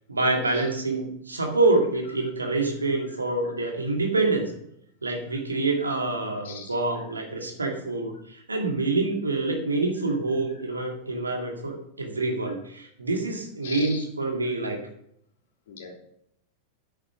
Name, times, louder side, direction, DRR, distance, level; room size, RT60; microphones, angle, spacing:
voice 1, 0.1-4.5 5.0-14.8, right 3 dB, 80° right, 2 dB, 2.3 m, -26 dB
voice 2, 6.4-6.8 10.5-10.7 12.5-12.6 13.6-14.0 14.4-14.7 15.7-15.9, left 5 dB, 60° left, 0 dB, 3.0 m, -42 dB
10.0 x 8.3 x 4.9 m, 0.72 s
figure-of-eight pair, 90°, 0 cm